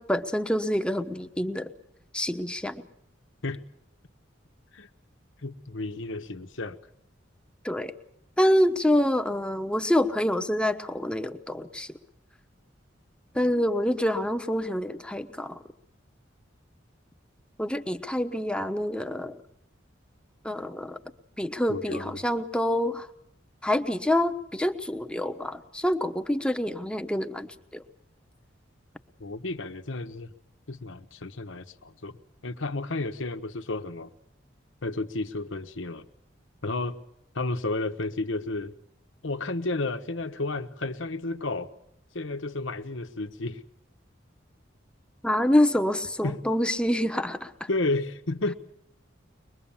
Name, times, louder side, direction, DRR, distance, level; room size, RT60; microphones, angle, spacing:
voice 1, 0.0-1.7 2.1-2.8 7.6-7.9 8.4-11.9 13.3-15.6 17.6-19.4 20.4-21.0 21.4-23.1 23.6-27.8 45.2-47.7, left 1 dB, 5° left, 8 dB, 1.0 m, -26 dB
voice 2, 5.4-6.8 13.3-13.5 21.7-22.2 29.2-30.3 30.7-32.2 32.4-34.1 34.8-36.1 36.6-36.9 37.3-38.7 39.2-41.7 42.1-43.6 46.2-46.4 47.7-48.5, left 2 dB, 80° left, 8 dB, 1.2 m, -32 dB
23.5 x 21.5 x 7.3 m, 0.76 s
head